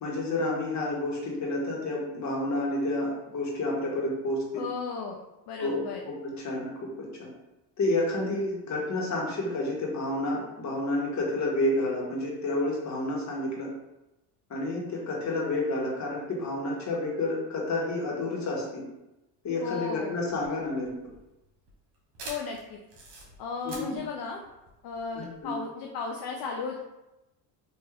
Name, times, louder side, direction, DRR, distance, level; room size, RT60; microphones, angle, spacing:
voice 1, 0.0-4.6 5.6-6.7 7.0-7.3 7.8-13.7 14.5-18.8 19.4-20.9 23.6-24.0 25.1-25.5, left 2 dB, 40° left, -2 dB, 1.3 m, -30 dB
voice 2, 4.5-5.2 5.5-6.0 19.6-20.2 22.2-22.8 23.4-24.4 24.8-26.8, left 5 dB, 55° left, 1 dB, 0.6 m, -35 dB
sound 1, 20.3-25.4, right 2 dB, 65° right, 1.2 m, -46 dB
3.4 x 2.6 x 3.3 m, 0.97 s
supercardioid pair, 90°, 43 cm